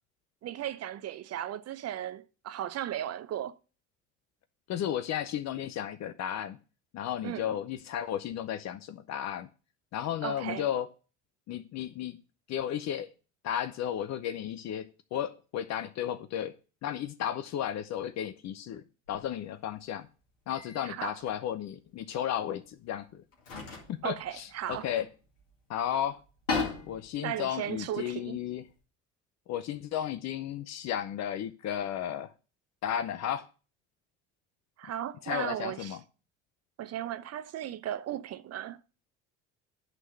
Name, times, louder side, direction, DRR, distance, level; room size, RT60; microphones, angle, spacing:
voice 1, 0.4-3.6 7.2-7.6 10.2-10.7 20.8-21.2 24.0-24.9 27.2-28.4 34.8-36.0 36.8-38.8, right 11 dB, 45° right, 0.7 m, -36 dB
voice 2, 4.7-6.6 6.9-9.5 9.9-10.9 11.5-12.2 12.5-13.1 13.4-16.6 16.8-20.1 20.5-23.2 23.9-25.1 25.7-26.2 26.9-28.6 29.5-32.3 32.8-33.5 35.2-36.0, left 10 dB, 50° left, 0.7 m, -34 dB
sound 1, 19.1-19.3 20.5-20.9 21.2-21.4 22.6-22.7 23.3-25.5 25.9-26.0 26.2-28.7, left 4 dB, 85° left, 2.1 m, -38 dB
11.0 x 3.8 x 6.4 m
hypercardioid pair, 60°, 36 cm